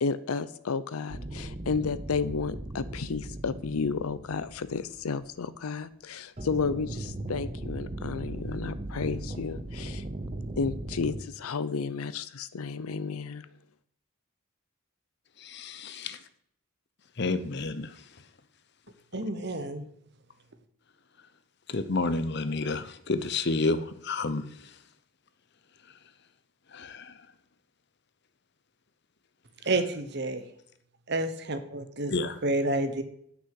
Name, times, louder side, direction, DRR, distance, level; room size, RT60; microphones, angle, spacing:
voice 1, 0.0-10.0 10.6-13.5, left 5 dB, 85° left, 14 dB, 0.5 m, -32 dB
sound 1, 1.1-5.4 6.4-11.2, right 1 dB, 30° right, 0.9 m, -38 dB
voice 2, 15.5-16.2 17.2-17.9 21.7-23.8 24.0-24.4 26.7-27.0 32.1-32.3, left 3 dB, 50° left, 12 dB, 0.8 m, -29 dB
voice 3, 19.1-19.9 29.6-30.4 31.1-32.1 32.4-33.0, right 2 dB, 50° right, 9 dB, 1.1 m, -29 dB
8.5 x 6.2 x 7.6 m, 0.70 s
head